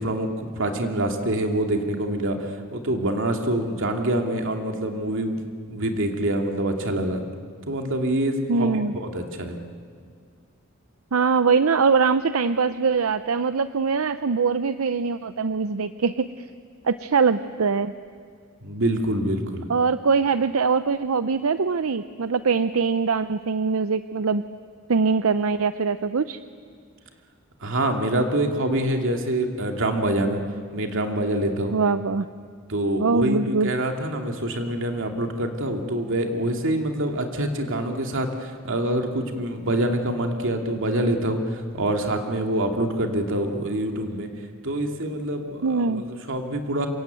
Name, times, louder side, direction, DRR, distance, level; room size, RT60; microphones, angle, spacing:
voice 1, 0.0-5.4 5.7-7.2 7.6-9.6 18.6-19.7 27.6-30.4 30.7-31.8 32.7-44.3 44.6-46.9, right 1 dB, 65° right, 3 dB, 2.6 m, -26 dB
voice 2, 8.5-8.9 11.1-16.3 16.8-17.9 19.7-24.4 24.9-26.4 31.7-32.3 33.0-33.7 45.6-46.0, right 5 dB, 90° right, 12 dB, 0.6 m, -22 dB
26.5 x 23.5 x 9.3 m, 2.1 s
head